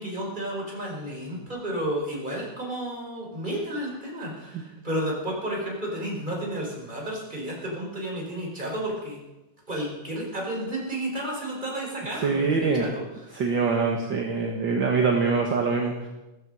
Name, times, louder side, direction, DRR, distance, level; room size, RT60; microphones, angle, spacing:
voice 1, 0.0-9.2 9.7-13.0, right 1 dB, 15° right, -2 dB, 4.7 m, -32 dB
voice 2, 12.1-12.9 13.3-16.1, right 4 dB, 45° right, 1 dB, 1.6 m, -24 dB
15.5 x 14.0 x 5.6 m, 1.0 s
omnidirectional pair, 3.8 m